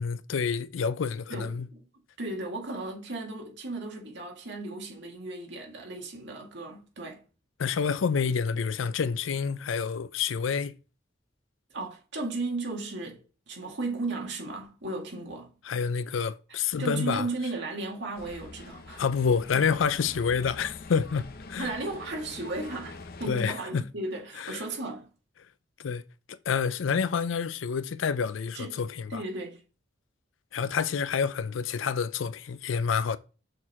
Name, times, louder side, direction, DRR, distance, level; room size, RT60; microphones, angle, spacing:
voice 1, 0.0-1.7 7.6-10.8 15.6-17.3 19.0-21.7 23.3-23.8 24.4-24.6 25.8-26.0 26.5-29.2 30.5-33.2, left 6 dB, 85° left, 0.4 m, -28 dB
voice 2, 1.3-1.8 2.2-7.2 11.7-13.2 13.5-15.5 16.5-19.0 21.6-25.1 28.5-28.8 29.1-29.6, right 2 dB, 65° right, 2.0 m, -35 dB
sound 1, 18.1-23.3, left 3 dB, 55° left, 0.7 m, -45 dB
6.5 x 4.5 x 3.5 m
head